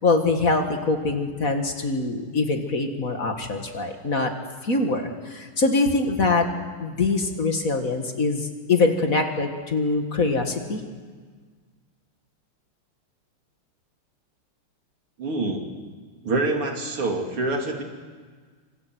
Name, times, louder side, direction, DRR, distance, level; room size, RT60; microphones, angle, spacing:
voice 1, 0.0-4.3 4.6-6.5 6.8-10.8, left 3 dB, 40° left, 4 dB, 2.1 m, -23 dB
voice 2, 15.2-15.7 16.2-17.8, right 2 dB, 80° right, 2 dB, 3.6 m, -26 dB
28.0 x 25.5 x 6.2 m, 1.6 s
omnidirectional pair, 2.4 m